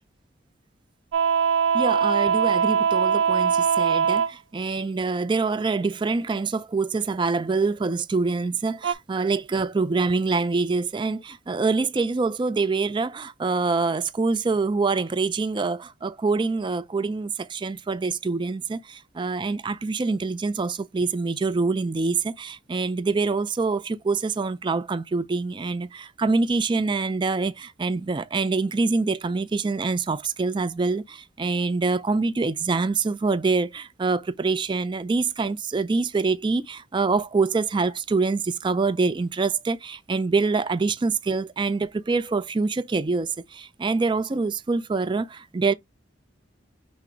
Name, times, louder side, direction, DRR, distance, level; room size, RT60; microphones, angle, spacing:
sound 1, 1.1-4.3 8.8-8.9, right 7 dB, 85° right, 0.5 m, -21 dB
voice 1, 1.7-45.7, right 4 dB, 25° right, 0.3 m, -25 dB
6.0 x 2.0 x 4.4 m
head